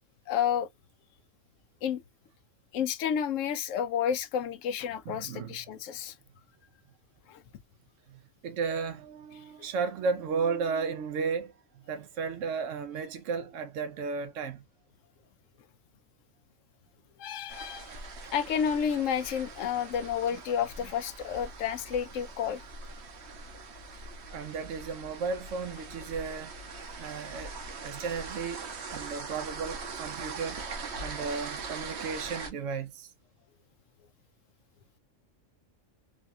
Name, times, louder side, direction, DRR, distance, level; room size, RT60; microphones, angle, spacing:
voice 1, 0.3-0.7 1.8-2.0 2.7-6.1 7.3-7.4 17.2-18.0 18.3-22.6, left 8 dB, 85° left, 1.0 m, -30 dB
voice 2, 5.1-5.6 8.1-11.5 11.8-14.6 24.3-26.5 27.0-27.5 27.8-30.6 31.0-33.1, right 5 dB, 80° right, 1.0 m, -34 dB
sound 1, 17.5-32.5, right 4 dB, 60° right, 1.1 m, -42 dB
3.9 x 2.3 x 2.6 m
omnidirectional pair, 1.3 m